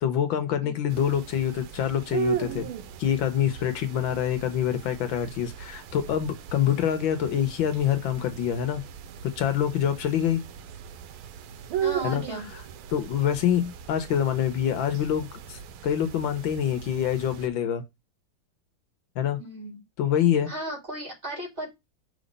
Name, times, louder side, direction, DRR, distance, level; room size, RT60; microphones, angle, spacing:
voice 1, 0.0-2.7 3.0-8.8 9.2-10.4 12.0-12.2 12.9-17.8 19.2-19.4 20.0-20.5, left 9 dB, 75° left, 1.6 m, -26 dB
sound 1, 0.9-17.5, right 9 dB, 90° right, 1.5 m, -37 dB
voice 2, 11.8-12.5 19.4-19.8 20.5-21.7, right 1 dB, 35° right, 3.4 m, -35 dB
5.2 x 3.7 x 5.3 m
omnidirectional pair, 2.2 m